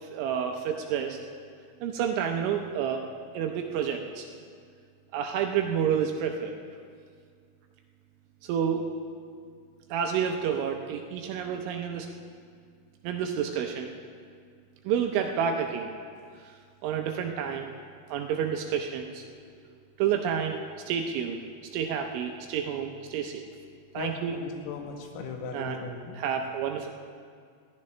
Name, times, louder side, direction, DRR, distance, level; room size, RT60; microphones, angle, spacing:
voice 1, 0.0-1.2 1.8-3.0 3.3-4.3 5.1-6.5 8.4-8.9 9.9-12.1 13.0-13.9 14.9-15.9 16.8-17.7 18.1-19.3 20.0-20.6 20.9-21.4 21.7-23.4 23.9-24.4 25.5-25.8 26.2-26.9, right 8 dB, 80° right, 3 dB, 2.9 m, -29 dB
voice 2, 24.0-26.2, left 4 dB, 80° left, 2 dB, 4.0 m, -38 dB
20.5 x 14.5 x 3.3 m, 2.1 s
omnidirectional pair, 6.0 m